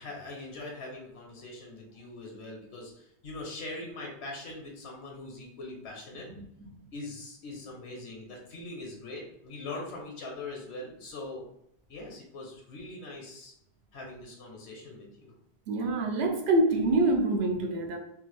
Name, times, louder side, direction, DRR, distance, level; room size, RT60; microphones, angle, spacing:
voice 1, 0.0-6.3 6.9-11.5 11.9-13.5 13.9-15.3, left 2 dB, 80° left, 1.1 m, -42 dB
voice 2, 15.7-18.0, right 2 dB, 75° right, 0.9 m, -25 dB
3.3 x 2.0 x 3.2 m
omnidirectional pair, 1.1 m